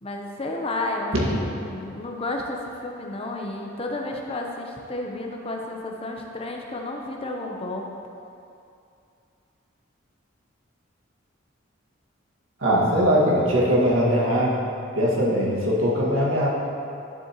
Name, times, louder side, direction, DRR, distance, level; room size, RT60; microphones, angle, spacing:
voice 1, 0.0-7.9, left 2 dB, 30° left, 1 dB, 0.8 m, -32 dB
voice 2, 12.6-14.6 15.0-16.5, equal, 85° right, -5 dB, 1.9 m, -21 dB
11.0 x 7.6 x 3.0 m, 2.6 s
head